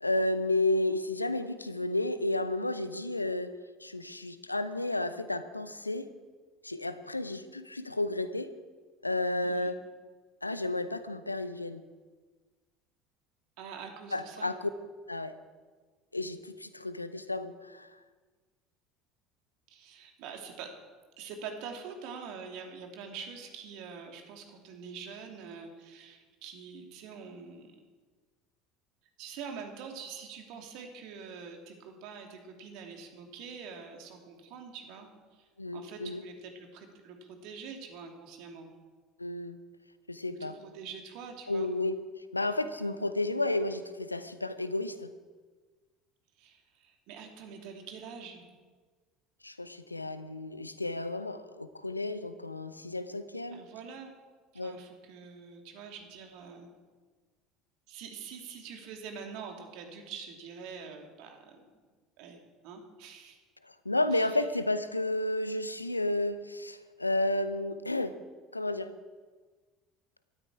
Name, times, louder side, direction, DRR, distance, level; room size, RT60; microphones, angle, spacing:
voice 1, 0.0-3.5 3.8-6.1 6.6-8.5 9.0-9.8 10.4-11.8 14.1-14.7 15.1-15.4 16.1-17.9 35.6-36.2 39.2-39.6 40.1-40.5 41.5-45.1 49.4-53.6 54.5-54.8 63.6-68.2 68.5-68.9, left 2 dB, 90° left, 12 dB, 0.7 m, -32 dB
voice 2, 9.4-9.7 13.6-14.5 19.7-20.7 21.2-27.7 29.2-38.7 40.3-41.7 46.4-48.4 53.5-54.1 54.5-56.7 57.9-61.7 62.2-63.4 64.1-64.4, right 6 dB, 55° right, 3 dB, 2.7 m, -45 dB
18.0 x 13.0 x 4.9 m, 1.4 s
figure-of-eight pair, 65°, 0 cm